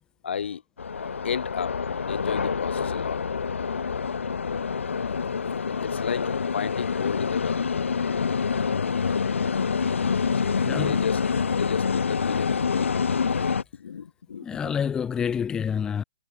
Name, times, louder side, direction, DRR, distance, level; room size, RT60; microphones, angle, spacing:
voice 1, 0.2-0.6 1.2-1.8 2.1-3.8 4.5-4.6 5.7-7.6 10.3-11.2 11.5-13.4 13.7-14.7, left 7 dB, 65° left, 0.8 m, -33 dB
sound 1, 0.8-13.6, left 5 dB, 85° left, 0.4 m, -26 dB
voice 2, 10.6-11.1 14.4-16.0, left 7 dB, 10° left, 0.7 m, -28 dB
hypercardioid pair, 140°, 7 cm